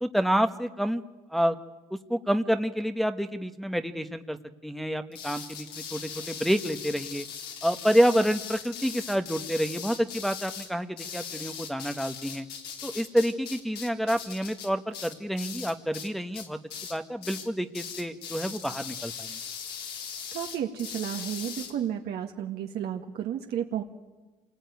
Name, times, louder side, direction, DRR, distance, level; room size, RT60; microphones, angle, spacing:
voice 1, 0.0-1.0 1.3-1.5 2.1-4.4 4.6-7.2 7.6-12.5 12.8-16.6 16.9-19.4, equal, ahead, 7 dB, 1.2 m, -28 dB
sound 1, 5.1-16.1 16.3-17.0 17.2-17.5 17.7-21.7, left 7 dB, 75° left, 3.8 m, -39 dB
voice 2, 20.3-23.8, right 9 dB, 70° right, 2 dB, 1.8 m, -32 dB
27.0 x 20.0 x 9.4 m, 1.2 s
cardioid pair, 110°, 17 cm